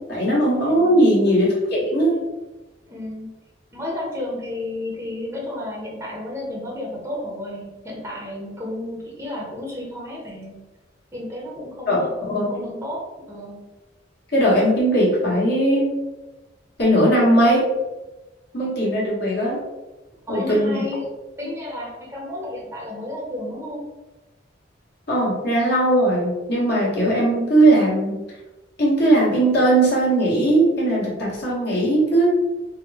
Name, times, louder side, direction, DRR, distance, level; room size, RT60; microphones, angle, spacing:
voice 1, 0.1-2.2 11.9-12.0 12.3-12.6 14.3-15.9 16.8-17.6 18.5-19.6 20.3-20.8 25.1-28.1 28.8-32.3, right 1 dB, 60° left, -6 dB, 1.5 m, -18 dB
voice 2, 0.7-1.0 2.9-3.3 3.7-10.5 11.1-13.6 20.3-21.1 21.4-23.9, left 1 dB, 15° right, -3 dB, 0.7 m, -32 dB
3.5 x 2.1 x 4.1 m, 1.1 s
head